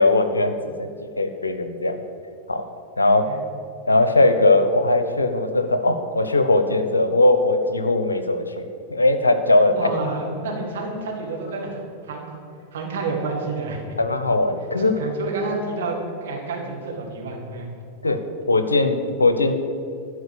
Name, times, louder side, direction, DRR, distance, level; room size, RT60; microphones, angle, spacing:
voice 1, 0.0-2.0 2.5-2.6 3.0-3.2 3.9-8.5 8.9-9.7 14.0-14.9 18.0-18.2 18.5-19.5, left 2 dB, 80° left, 8 dB, 0.8 m, -19 dB
voice 2, 9.6-12.4 12.7-13.8 14.8-17.7, right 3 dB, 60° right, -1 dB, 2.1 m, -29 dB
12.0 x 4.8 x 7.9 m, 2.4 s
figure-of-eight pair, 90°, 0 cm